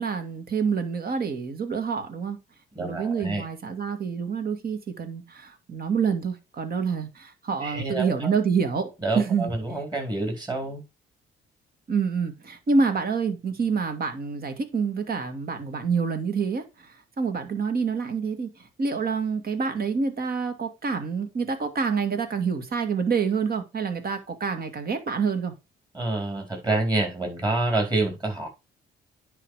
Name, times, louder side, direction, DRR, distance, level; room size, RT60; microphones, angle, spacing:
voice 1, 0.0-2.4 2.8-9.5 11.9-25.5, right 5 dB, 50° right, 2.0 m, -27 dB
voice 2, 2.8-3.4 7.6-8.3 9.0-10.8 25.9-28.5, right 2 dB, 20° right, 4.2 m, -27 dB
9.9 x 4.0 x 4.8 m
cardioid pair, 90°, 20 cm